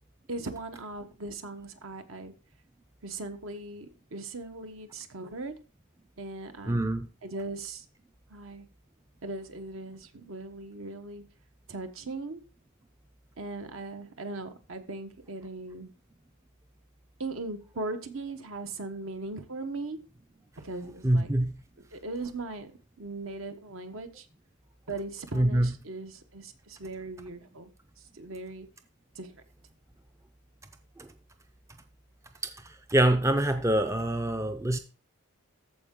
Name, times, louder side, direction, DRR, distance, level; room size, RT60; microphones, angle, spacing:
voice 1, 0.3-2.3 3.0-5.6 6.2-6.9 7.2-7.8 8.3-8.7 9.2-11.2 11.7-12.4 13.4-15.9 17.2-20.0 20.6-21.3 21.9-22.7 23.0-24.3 24.9-27.7 28.1-28.7 29.1-29.4, right 2 dB, 65° right, 1.1 m, -39 dB
voice 2, 6.7-7.1 21.0-21.5 25.3-25.7 31.0-31.1 32.4-34.8, right 1 dB, 15° right, 0.5 m, -25 dB
14.0 x 4.8 x 3.7 m
head